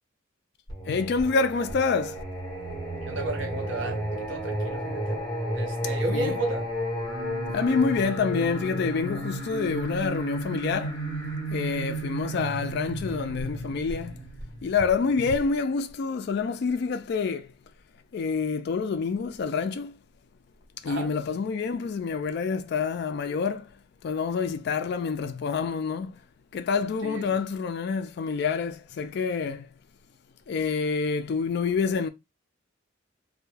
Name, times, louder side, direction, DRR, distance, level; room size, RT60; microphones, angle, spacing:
Singing, 0.7-15.4, right 1 dB, 20° left, 1.0 m, -32 dB
voice 1, 0.9-2.2 6.1-6.3 7.5-11.0 11.5-14.2 14.6-17.5 18.1-19.9 20.8-23.7 24.0-26.1 26.5-29.7 30.5-32.1, left 5 dB, 50° left, 0.3 m, -27 dB
voice 2, 3.0-5.2 5.5-6.7 20.9-21.1 27.0-27.4, right 2 dB, 60° right, 0.7 m, -33 dB
2.2 x 2.1 x 3.1 m
head